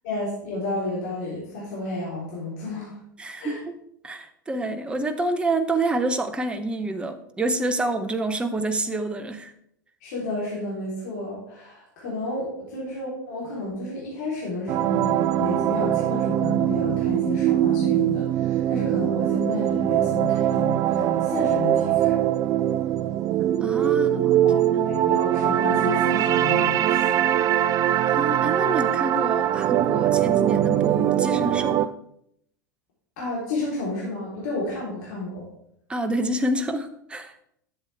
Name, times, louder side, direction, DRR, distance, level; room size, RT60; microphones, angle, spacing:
voice 1, 0.0-3.0 3.4-3.6 10.0-22.2 23.9-27.3 33.2-35.5, left 2 dB, 55° left, -6 dB, 3.6 m, -31 dB
voice 2, 3.2-3.8 4.0-9.5 23.6-24.9 28.1-31.9 35.9-37.4, right 2 dB, 10° right, 8 dB, 0.7 m, -28 dB
sound 1, 14.7-31.9, right 11 dB, 35° right, 0.4 m, -22 dB
11.0 x 7.7 x 3.4 m, 0.72 s
figure-of-eight pair, 90°, 11 cm